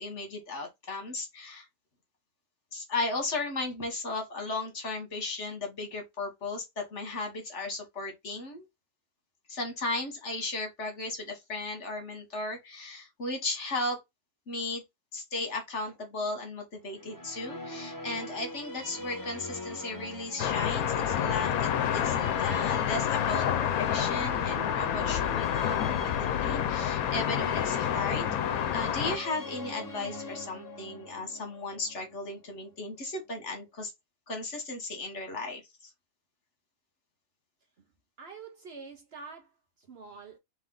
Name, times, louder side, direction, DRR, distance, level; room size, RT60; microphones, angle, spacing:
voice 1, 0.0-1.7 2.7-8.6 9.5-14.0 14.5-14.8 15.1-33.9 34.3-35.9, left 2 dB, 55° left, 1.7 m, -36 dB
sound 1, 16.9-33.0, left 2 dB, 20° left, 0.5 m, -41 dB
sound 2, 20.4-29.2, left 10 dB, 85° left, 1.1 m, -28 dB
voice 2, 38.2-40.4, right 4 dB, 50° right, 0.9 m, -46 dB
3.3 x 3.2 x 3.7 m
omnidirectional pair, 1.5 m